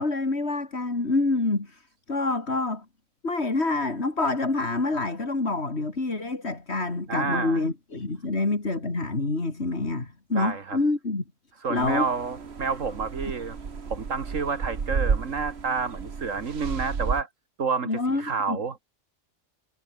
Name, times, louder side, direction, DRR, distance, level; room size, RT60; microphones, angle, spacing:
voice 1, 0.0-1.8 2.1-2.8 3.2-11.2 11.7-12.1 17.9-18.6, left 3 dB, 55° left, 3.6 m, -27 dB
voice 2, 7.1-7.6 10.4-10.8 11.6-13.6 13.9-17.3 17.6-18.9, right 5 dB, 85° right, 2.3 m, -29 dB
sound 1, 11.8-17.2, right 5 dB, 55° right, 1.8 m, -32 dB
omnidirectional pair, 1.3 m